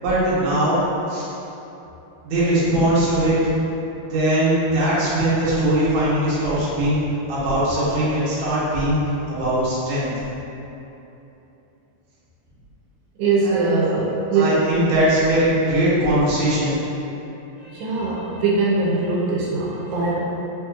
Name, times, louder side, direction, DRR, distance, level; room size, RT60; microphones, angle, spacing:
voice 1, 0.0-0.8 1.1-1.3 2.2-3.4 4.1-7.0 7.3-9.0 9.3-10.1 13.4-13.7 14.3-16.8, right 1 dB, 65° right, -10 dB, 1.9 m, -20 dB
voice 2, 13.2-14.4 17.6-20.2, right 3 dB, 85° right, -5 dB, 2.2 m, -21 dB
5.0 x 2.8 x 2.3 m, 2.9 s
omnidirectional pair, 3.8 m